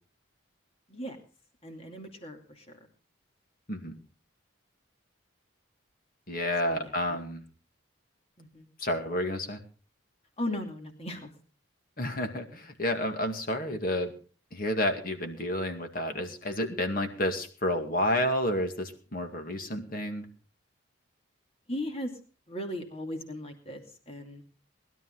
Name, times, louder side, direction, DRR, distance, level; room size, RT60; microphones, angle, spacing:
voice 1, 1.6-2.7 6.6-6.9 8.4-8.7 10.4-11.3 21.7-22.1 22.5-24.4, left 1 dB, 30° left, 4 dB, 2.5 m, -37 dB
voice 2, 6.3-7.4 8.8-9.6 12.0-14.1 14.5-20.3, left 1 dB, 45° left, 6 dB, 2.2 m, -30 dB
20.0 x 12.0 x 3.9 m, 0.36 s
head